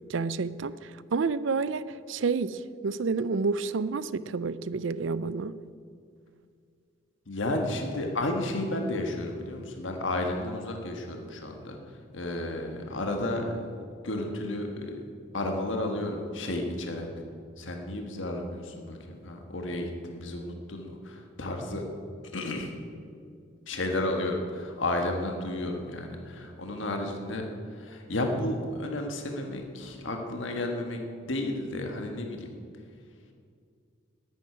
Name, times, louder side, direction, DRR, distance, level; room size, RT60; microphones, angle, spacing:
voice 1, 0.1-5.6, right 4 dB, 70° right, 0.5 m, -29 dB
voice 2, 7.3-11.8 12.1-13.6 14.0-15.1 15.3-17.1 17.6-21.9 22.3-22.7 23.7-31.0 31.3-32.5, left 1 dB, 70° left, 1.6 m, -32 dB
10.0 x 9.6 x 9.9 m
head